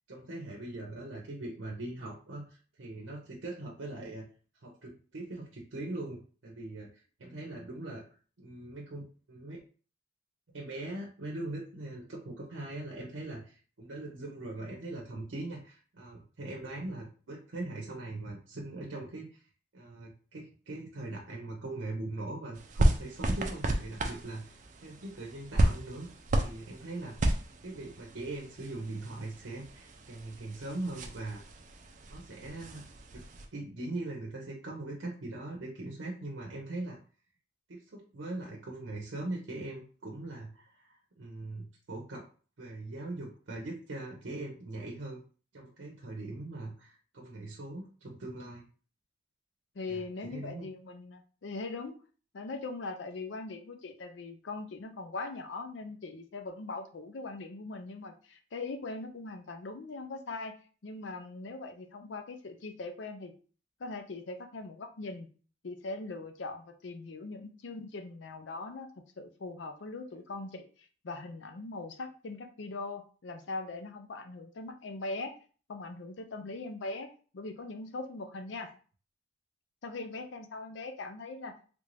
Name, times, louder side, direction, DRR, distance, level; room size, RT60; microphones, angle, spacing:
voice 1, 0.1-4.2 4.6-8.0 8.4-9.6 10.5-19.4 19.7-26.1 26.4-27.3 27.6-31.4 32.1-32.8 33.1-33.2 33.5-37.0 37.7-42.2 42.6-45.2 45.5-48.6 49.9-50.0 50.3-50.7, right 2 dB, 90° right, -1 dB, 0.7 m, -41 dB
sound 1, 22.5-33.5, right 1 dB, 40° right, 0.4 m, -33 dB
voice 2, 49.7-52.0 52.3-60.6 60.8-63.3 63.8-65.3 65.6-68.9 69.2-70.7 71.0-75.3 75.7-77.1 77.3-78.7 79.8-81.5, left 3 dB, 75° left, 6 dB, 0.5 m, -40 dB
3.3 x 2.5 x 3.2 m, 0.39 s
head